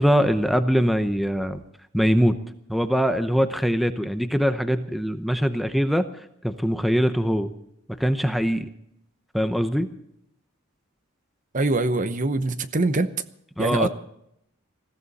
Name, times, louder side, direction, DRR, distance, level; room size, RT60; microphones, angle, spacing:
voice 1, 0.0-1.6 1.9-2.4 2.7-6.1 6.4-7.5 8.0-8.7 9.3-9.9 13.6-13.9, equal, ahead, 0.8 m, -22 dB
voice 2, 11.5-13.1 13.6-13.9, right 2 dB, 35° right, 0.8 m, -23 dB
20.5 x 15.0 x 4.2 m
head